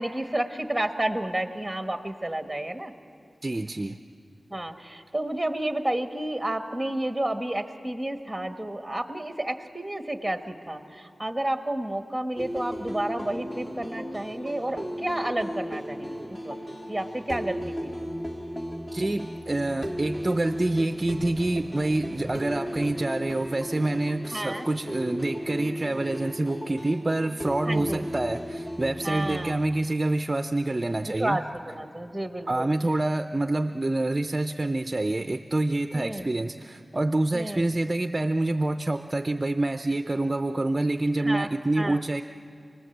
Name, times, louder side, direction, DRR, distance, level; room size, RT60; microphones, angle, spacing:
voice 1, 0.0-2.9 4.5-16.6 16.9-17.9 24.3-24.7 27.7-28.1 29.0-29.6 31.2-32.7 35.9-36.3 37.3-37.7 41.2-41.5 41.8-42.0, right 1 dB, 5° right, 6 dB, 1.3 m, -31 dB
voice 2, 3.4-4.0 18.9-31.4 32.5-42.2, right 2 dB, 30° right, 8 dB, 0.6 m, -27 dB
sound 1, 12.4-29.6, equal, 30° left, 2.2 m, -35 dB
28.0 x 20.0 x 8.0 m, 2.6 s
wide cardioid pair, 95°, 0 cm